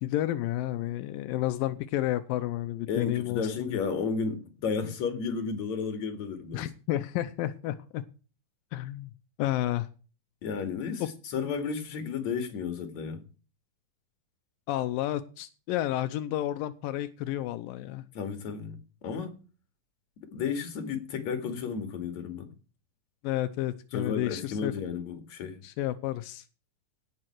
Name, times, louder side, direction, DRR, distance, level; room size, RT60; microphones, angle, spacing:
voice 1, 0.0-3.8 6.5-8.0 8.7-9.1 9.4-9.9 11.0-11.1 14.7-18.0 23.2-24.7 25.6-26.4, left 14 dB, 90° left, 2.5 m, -31 dB
voice 2, 2.9-6.7 10.4-11.0 11.3-13.2 18.1-19.4 20.3-22.5 23.9-25.6, left 5 dB, 55° left, 3.3 m, -33 dB
17.5 x 7.6 x 4.6 m
omnidirectional pair, 4.0 m